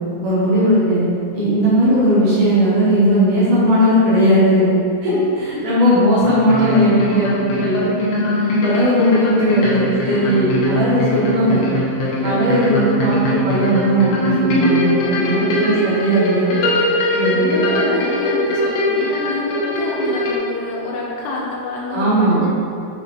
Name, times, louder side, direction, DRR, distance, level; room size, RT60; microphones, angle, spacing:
voice 1, 0.2-4.7 5.0-7.9 8.6-11.6 12.2-16.6 17.1-17.6 21.9-22.4, equal, 75° right, -9 dB, 3.0 m, -17 dB
sound 1, 6.2-20.4, equal, 70° left, 2.1 m, -21 dB
voice 2, 12.1-12.5 15.3-15.6 17.3-22.5, left 3 dB, 85° left, -4 dB, 3.1 m, -28 dB
7.9 x 4.0 x 4.1 m, 2.7 s
omnidirectional pair, 4.6 m